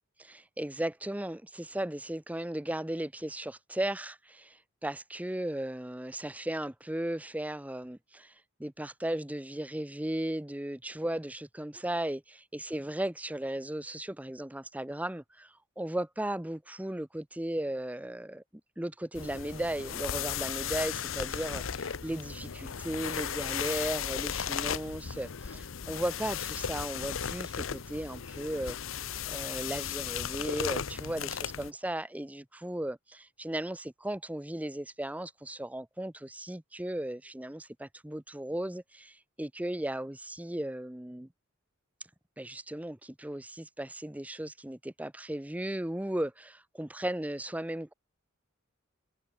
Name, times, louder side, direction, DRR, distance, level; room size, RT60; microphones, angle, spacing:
voice 1, 0.2-8.3 8.6-18.4 18.8-28.8 29.3-41.3 42.4-47.9, right 1 dB, 5° right, 0.7 m, -36 dB
sound 1, 19.1-31.7, left 8 dB, 70° left, 0.8 m, -36 dB
head